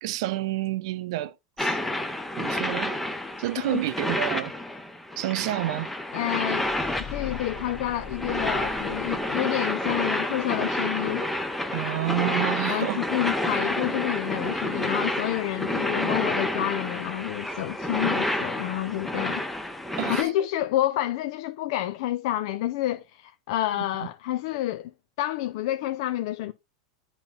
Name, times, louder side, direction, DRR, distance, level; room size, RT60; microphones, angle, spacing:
voice 1, 0.0-1.8 2.4-3.0 3.4-4.5 5.2-5.9 11.7-13.0 19.2-19.4 20.0-20.3, right 15 dB, 65° right, 0.5 m, -29 dB
sound 1, 1.6-20.2, left 1 dB, 5° left, 0.6 m, -29 dB
voice 2, 6.1-6.7 7.1-11.3 12.7-19.4 20.1-24.9 25.2-26.5, left 14 dB, 60° left, 0.4 m, -29 dB
sound 2, 6.6-9.6, left 6 dB, 40° left, 1.3 m, -40 dB
8.7 x 2.9 x 5.3 m
supercardioid pair, 130°, 3 cm